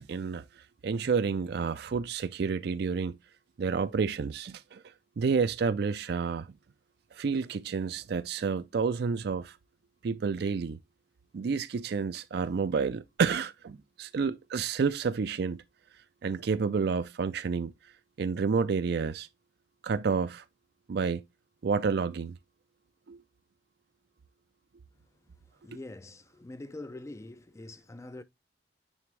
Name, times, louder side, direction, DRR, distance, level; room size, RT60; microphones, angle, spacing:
voice 1, 0.0-3.2 3.6-4.8 5.2-6.5 7.1-9.6 10.0-10.8 11.3-15.6 16.2-17.7 18.2-19.3 19.8-20.4 20.9-21.2 21.6-22.4 23.1-23.2, right 5 dB, 60° right, 0.4 m, -30 dB
voice 2, 25.6-28.2, left 2 dB, 15° left, 0.4 m, -44 dB
9.4 x 3.4 x 3.2 m
head